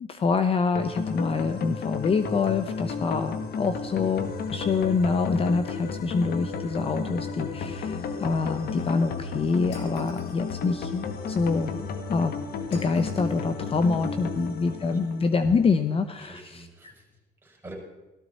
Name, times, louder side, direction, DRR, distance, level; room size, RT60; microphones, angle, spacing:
voice 1, 0.0-12.3 12.7-16.9, left 4 dB, 35° left, 10 dB, 0.7 m, -26 dB
sound 1, 0.7-15.8, left 5 dB, 65° left, 1.6 m, -33 dB
Shatter, 9.7-10.5 12.7-13.4, left 4 dB, 80° left, 3.9 m, -50 dB
voice 2, 13.7-14.4 14.8-15.1 16.2-17.7, right 1 dB, 10° right, -1 dB, 5.5 m, -47 dB
17.0 x 13.5 x 4.2 m, 1.0 s
cardioid pair, 110°, 17 cm